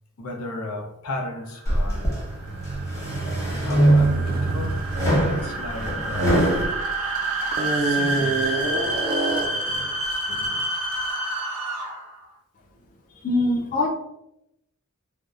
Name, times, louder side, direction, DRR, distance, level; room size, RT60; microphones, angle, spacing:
voice 1, 0.2-2.1 3.5-4.8 5.2-6.4 7.7-9.0 9.3-10.7, left 1 dB, 85° left, 1 dB, 0.5 m, -35 dB
sound 1, 1.5-12.1, right 1 dB, 80° right, 0.6 m, -29 dB
sound 2, 1.6-2.2 2.7-4.3 4.9-6.7, right 1 dB, 15° left, 0.9 m, -22 dB
sound 3, 2.1-6.9 7.5-9.7, right 3 dB, 45° right, 0.3 m, -28 dB
voice 2, 13.2-13.9, left 2 dB, 40° left, 0 dB, 0.3 m, -22 dB
2.7 x 2.0 x 2.3 m, 0.83 s
head